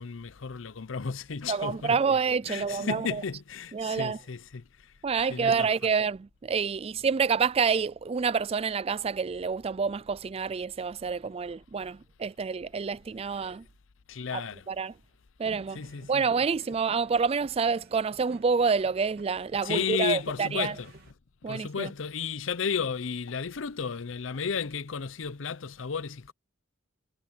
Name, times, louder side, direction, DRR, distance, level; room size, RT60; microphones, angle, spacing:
voice 1, 0.0-2.2 2.5-4.9 5.3-5.7 14.1-14.7 15.7-16.2 19.6-20.9 21.5-26.3, left 6 dB, 80° left, 0.7 m, -33 dB
voice 2, 1.5-3.2 3.7-4.2 5.0-13.6 14.3-14.4 14.7-14.9 15.4-15.8 16.1-20.7 21.4-21.9, right 5 dB, 30° right, 0.4 m, -28 dB
sound 1, 15.4-21.1, right 2 dB, 55° right, 2.6 m, -53 dB
head